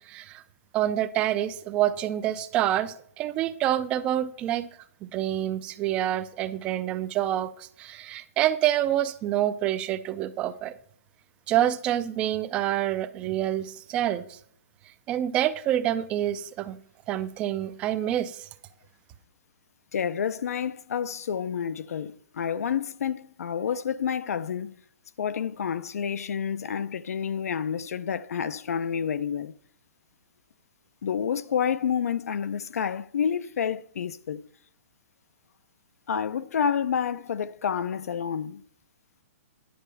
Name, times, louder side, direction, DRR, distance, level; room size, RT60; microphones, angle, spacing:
voice 1, 0.0-0.4 0.7-4.7 5.0-10.7 11.5-14.4 15.1-16.8 17.1-18.5, right 12 dB, 15° right, 0.3 m, -27 dB
voice 2, 19.9-24.8 25.2-29.5 31.0-34.5 36.1-38.6, left 7 dB, 80° left, 0.6 m, -29 dB
10.0 x 4.2 x 6.9 m
hypercardioid pair, 170°, 8 cm